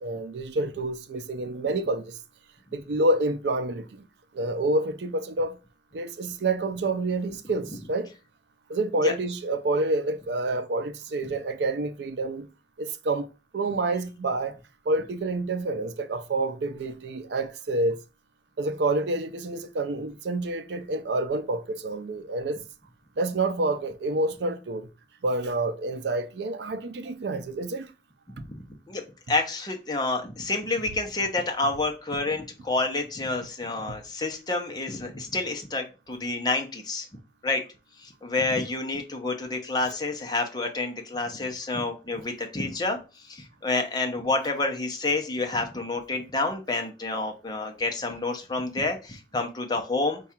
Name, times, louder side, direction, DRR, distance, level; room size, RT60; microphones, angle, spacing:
voice 1, 0.0-2.2 2.7-4.1 4.3-5.6 5.9-8.1 8.7-12.5 12.8-13.3 13.5-14.6 14.9-18.0 18.6-22.6 23.2-24.9 25.2-27.9 39.8-40.0, right 2 dB, 75° right, 0.5 m, -28 dB
voice 2, 29.3-37.1 37.4-37.6 38.0-43.0 43.2-50.2, left 3 dB, 25° left, 0.6 m, -29 dB
4.7 x 2.3 x 4.2 m
head